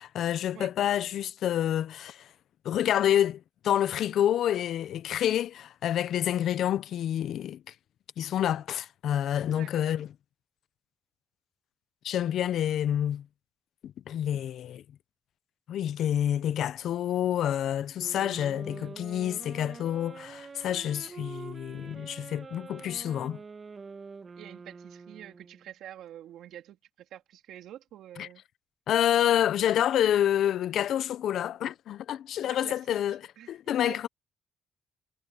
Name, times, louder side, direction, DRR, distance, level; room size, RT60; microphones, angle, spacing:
voice 1, 0.0-2.3 2.6-7.6 8.2-10.1 12.0-13.3 13.8-14.8 15.7-23.4 28.2-28.3 28.9-34.1, left 10 dB, 75° left, 0.7 m, -28 dB
voice 2, 9.5-10.0 24.4-28.4 32.4-33.0 33.4-33.5 33.8-34.1, right 11 dB, 80° right, 3.0 m, -47 dB
sound 1, 18.0-25.7, right 4 dB, 35° right, 1.6 m, -46 dB
cardioid pair, 90°, 0 cm